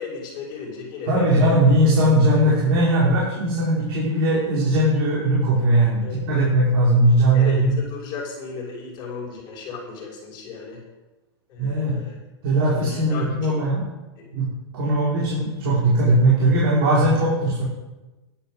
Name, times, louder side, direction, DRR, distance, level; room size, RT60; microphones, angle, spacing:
voice 1, 0.0-1.3 6.0-6.2 7.3-10.8 11.5-12.2 12.7-13.6 14.2-14.3 14.8-14.9, left 5 dB, 30° left, -2 dB, 5.8 m, -35 dB
voice 2, 1.1-7.7 11.6-12.0 12.4-13.8 14.3-14.5 14.7-17.6, right 1 dB, 60° right, -6 dB, 5.0 m, -19 dB
11.0 x 11.0 x 6.4 m, 1.1 s
supercardioid pair, 150°, 14 cm